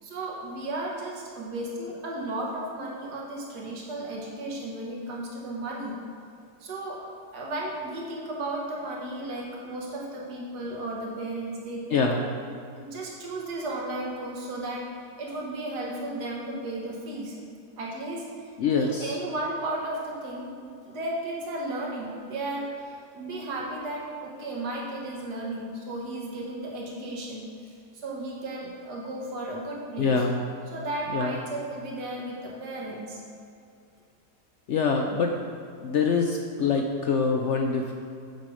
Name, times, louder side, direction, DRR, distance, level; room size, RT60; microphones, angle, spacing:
voice 1, 0.0-6.0 6.6-12.1 12.7-14.9 15.2-17.3 17.8-18.5 18.8-27.7 28.0-30.3 30.7-33.2, right 1 dB, 80° right, -3 dB, 1.9 m, -34 dB
voice 2, 11.9-12.2 18.6-19.2 30.0-30.4 31.1-31.3 34.7-35.4 35.8-37.9, left 5 dB, 65° left, 2 dB, 0.7 m, -25 dB
8.2 x 6.4 x 4.9 m, 2.4 s
omnidirectional pair, 1.7 m